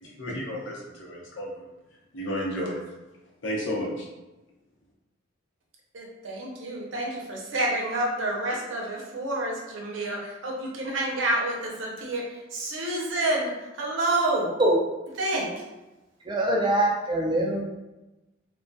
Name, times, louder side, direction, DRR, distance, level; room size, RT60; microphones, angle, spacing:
voice 1, 0.0-1.5 2.1-2.8 3.4-4.1, equal, 75° left, -3 dB, 0.7 m, -32 dB
voice 2, 5.9-14.5 15.2-15.6, right 1 dB, 85° right, -1 dB, 0.6 m, -29 dB
voice 3, 16.2-17.6, right 1 dB, 25° right, -1 dB, 0.4 m, -23 dB
2.2 x 2.2 x 2.5 m, 1.0 s
head